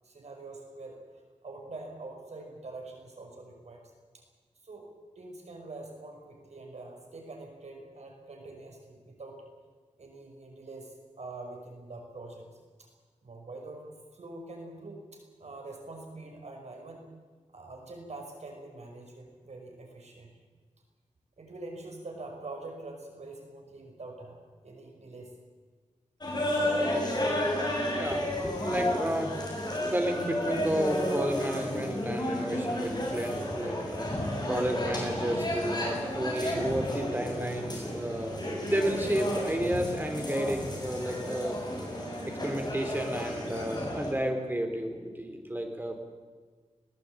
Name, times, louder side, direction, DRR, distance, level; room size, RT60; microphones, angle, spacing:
voice 1, 0.0-1.0 1.4-3.8 4.1-4.2 4.6-4.9 5.2-9.4 10.0-12.4 12.8-12.9 13.2-17.1 17.5-20.4 21.4-25.3, right 2 dB, 65° right, 2 dB, 5.6 m, -45 dB
sound 1, 26.2-44.1, left 1 dB, 35° left, 7.2 m, -32 dB
voice 2, 27.8-29.4 29.8-41.6 42.2-46.0, right 1 dB, 15° right, 4 dB, 3.8 m, -32 dB
21.0 x 18.5 x 8.8 m, 1.5 s
wide cardioid pair, 110°, 12 cm